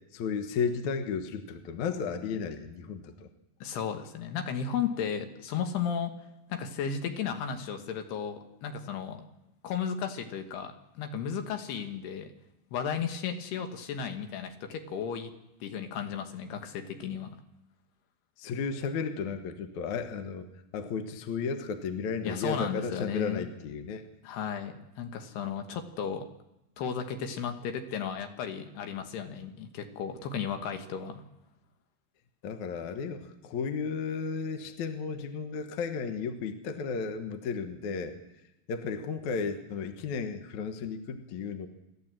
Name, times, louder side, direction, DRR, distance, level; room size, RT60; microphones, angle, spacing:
voice 1, 0.1-3.3 18.4-20.5 20.7-24.0 32.4-38.1 38.7-41.7, left 5 dB, 60° left, 6 dB, 2.3 m, -34 dB
voice 2, 3.6-6.1 6.5-9.3 9.6-12.3 12.7-15.3 15.6-17.4 22.2-23.5 24.2-26.3 26.8-31.2, left 7 dB, 75° left, 6 dB, 3.4 m, -34 dB
27.5 x 13.0 x 7.6 m, 0.91 s
omnidirectional pair, 4.8 m